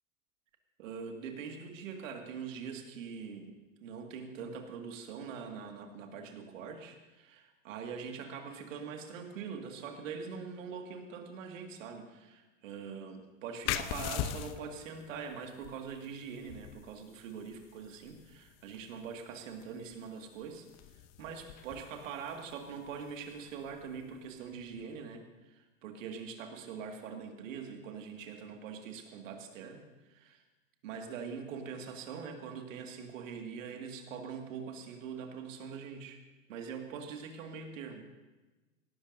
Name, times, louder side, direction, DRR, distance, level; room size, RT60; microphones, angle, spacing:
voice 1, 0.8-20.7 20.9-29.8 30.1-30.4 30.8-36.2 36.5-38.1, right 6 dB, 65° right, 4 dB, 2.1 m, -43 dB
sound 1, 13.6-24.9, left 11 dB, 40° left, 0.8 m, -43 dB
18.5 x 16.5 x 2.7 m, 1.2 s
figure-of-eight pair, 85°, 41 cm